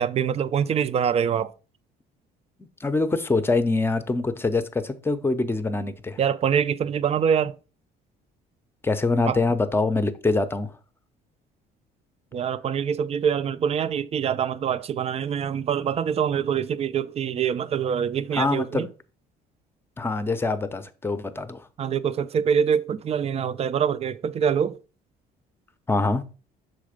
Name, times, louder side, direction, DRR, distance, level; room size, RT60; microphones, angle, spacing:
voice 1, 0.0-1.5 6.2-7.6 9.3-9.4 12.3-18.9 21.8-24.8, right 8 dB, 40° right, 0.5 m, -24 dB
voice 2, 2.8-6.2 8.8-10.8 18.3-18.9 20.0-21.7 25.9-26.2, left 3 dB, 15° left, 0.7 m, -24 dB
6.3 x 4.2 x 5.0 m
cardioid pair, 110°, 17 cm